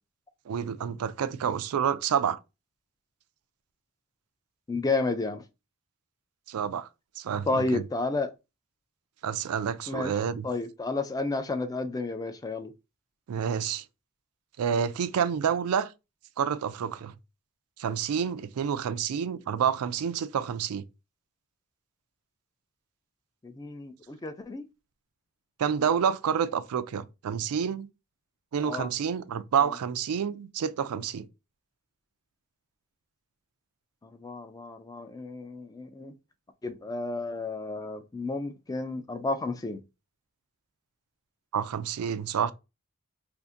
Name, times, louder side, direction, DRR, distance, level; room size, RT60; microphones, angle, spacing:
voice 1, 0.5-2.4 6.5-6.9 7.2-7.8 9.2-10.5 13.3-13.8 14.6-15.9 16.4-17.1 17.8-20.8 25.6-27.9 28.5-31.3 41.5-42.5, right 7 dB, 90° right, 0.4 m, -28 dB
voice 2, 4.7-5.4 7.5-8.3 9.9-10.1 10.4-12.7 23.4-24.6 28.6-28.9 34.0-36.1 36.6-39.8, left 3 dB, 15° left, 0.3 m, -31 dB
2.6 x 2.5 x 3.6 m
head